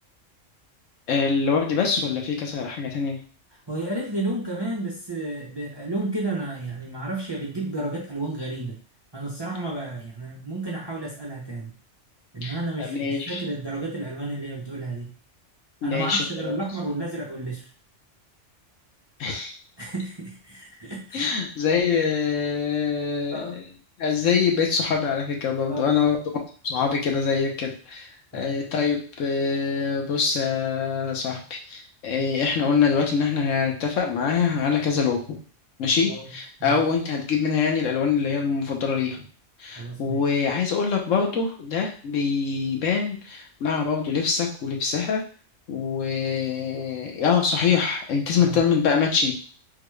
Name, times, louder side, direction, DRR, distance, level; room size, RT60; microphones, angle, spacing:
voice 1, 1.1-3.2 12.4-13.4 15.8-16.6 19.2-19.6 21.1-23.6 24.0-26.2 26.6-35.4 35.8-39.2 39.6-45.2 45.7-49.3, left 6 dB, 80° left, 1 dB, 1.2 m, -24 dB
voice 2, 3.7-8.8 9.1-11.7 12.3-15.1 15.8-17.7 19.8-21.3 23.3-23.6 25.7-25.8 28.3-28.6 32.2-32.3 36.1-36.3 36.6-36.8 39.7-40.2 48.4-48.6, right 2 dB, 30° right, -3 dB, 0.5 m, -32 dB
3.9 x 2.3 x 3.1 m, 0.39 s
omnidirectional pair, 1.3 m